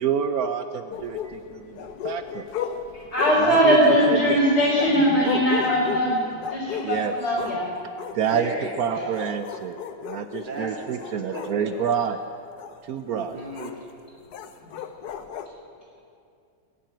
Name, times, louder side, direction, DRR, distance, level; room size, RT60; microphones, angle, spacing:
voice 1, 0.0-2.5 3.4-3.8 4.1-4.4 6.8-7.1 8.1-9.8 10.0-12.2 12.9-13.4, right 8 dB, 70° right, 9 dB, 0.9 m, -28 dB
sound 1, 0.9-7.6 8.0-8.4 9.0-10.5 11.0-11.9 12.6-12.8 13.6-13.7 14.3-15.5, left 8 dB, 65° left, 1.2 m, -35 dB
voice 2, 2.9-7.7, equal, 40° left, -9 dB, 4.1 m, -20 dB
voice 3, 8.3-9.2 10.4-11.6 13.1-13.7, right 1 dB, 25° right, -1 dB, 2.5 m, -34 dB
20.0 x 7.6 x 8.8 m, 2.4 s
omnidirectional pair, 2.0 m